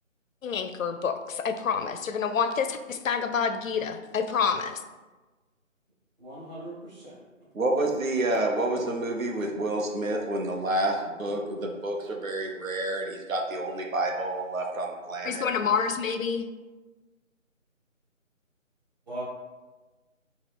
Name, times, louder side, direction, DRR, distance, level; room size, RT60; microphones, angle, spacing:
voice 1, 0.4-4.8 15.2-16.5, left 6 dB, 75° left, 9 dB, 0.5 m, -28 dB
voice 2, 6.2-7.2 19.1-19.2, right 1 dB, 35° right, -7 dB, 0.9 m, -39 dB
voice 3, 7.5-15.4, right 2 dB, 80° right, 2 dB, 0.9 m, -29 dB
4.4 x 2.3 x 3.5 m, 1.2 s
figure-of-eight pair, 170°, 40 cm